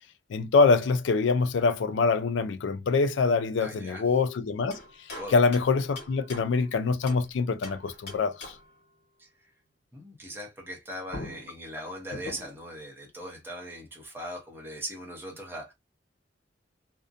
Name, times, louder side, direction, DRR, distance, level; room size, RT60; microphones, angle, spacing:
voice 1, 0.3-4.8 5.3-8.5, left 4 dB, 80° left, 0.4 m, -24 dB
voice 2, 3.6-4.0 5.1-5.4 9.2-9.3 9.9-15.7, equal, 10° right, 0.7 m, -40 dB
sound 1, 4.7-7.3 7.6-8.8 10.7-10.8 11.1-12.7, left 2 dB, 60° left, 1.3 m, -43 dB
2.5 x 2.1 x 2.5 m
head